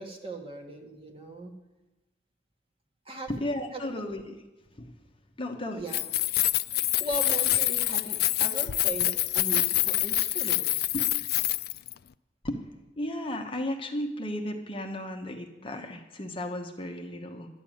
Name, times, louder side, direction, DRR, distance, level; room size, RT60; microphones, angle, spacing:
voice 1, 0.0-1.5 3.0-3.3 3.7-4.0 5.7-6.0 6.7-10.9, right 2 dB, 30° right, 2 dB, 1.6 m, -38 dB
voice 2, 3.3-4.3 4.8-4.9 5.4-5.9 12.4-12.6 13.0-17.5, left 1 dB, 30° left, 4 dB, 1.0 m, -34 dB
Keys jangling, 5.8-11.9, left 16 dB, 55° left, 0.3 m, -26 dB
11.5 x 6.9 x 9.1 m, 1.0 s
head